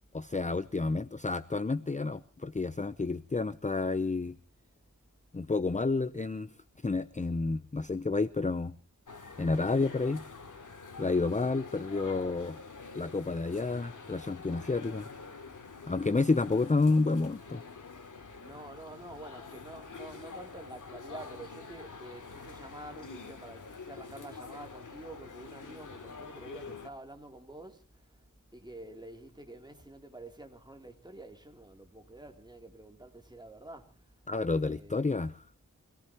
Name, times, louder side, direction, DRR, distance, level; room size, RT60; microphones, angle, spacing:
voice 1, 0.1-4.4 5.3-6.5 6.8-8.7 9.4-10.2 11.0-12.6 12.9-15.1 15.9-17.6 34.3-35.5, left 3 dB, 25° left, 0.7 m, -30 dB
sound 1, 9.1-26.9, left 4 dB, 75° left, 2.8 m, -47 dB
voice 2, 18.4-28.3 28.5-34.2 34.6-35.1, right 1 dB, 15° right, 3.1 m, -48 dB
25.5 x 18.0 x 3.0 m
wide cardioid pair, 80°, 31 cm